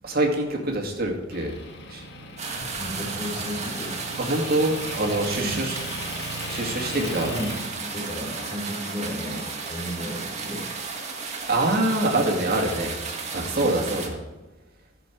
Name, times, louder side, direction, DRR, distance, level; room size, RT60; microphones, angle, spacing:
voice 1, 0.0-1.5 1.9-2.1 4.2-5.8 6.5-7.3 11.5-13.0 13.3-14.2, right 1 dB, 50° right, 1 dB, 2.2 m, -25 dB
Motor vehicle (road) / Engine, 1.3-7.7, left 1 dB, 60° left, 1.5 m, -38 dB
sound 1, 2.4-14.1, right 4 dB, 35° right, 1.8 m, -34 dB
voice 2, 2.8-4.0 5.4-5.6 6.9-10.7 13.5-13.8, equal, 30° left, -3 dB, 4.6 m, -34 dB
15.0 x 6.9 x 4.6 m, 1.1 s
head